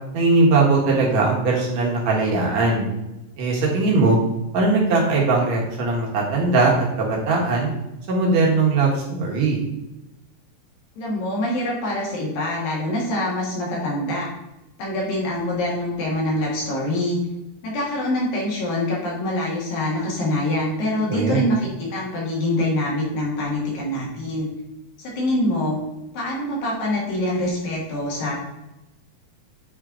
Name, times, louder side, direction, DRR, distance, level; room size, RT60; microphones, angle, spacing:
voice 1, 0.1-2.8 3.4-4.2 4.5-7.7 8.1-9.6 21.1-21.5, right 3 dB, 55° right, -3 dB, 2.3 m, -20 dB
voice 2, 11.0-14.3 14.8-17.2 17.6-24.5 25.0-25.8 26.1-28.3, left 1 dB, 65° left, -4 dB, 3.3 m, -25 dB
9.8 x 4.4 x 3.7 m, 0.94 s
omnidirectional pair, 4.5 m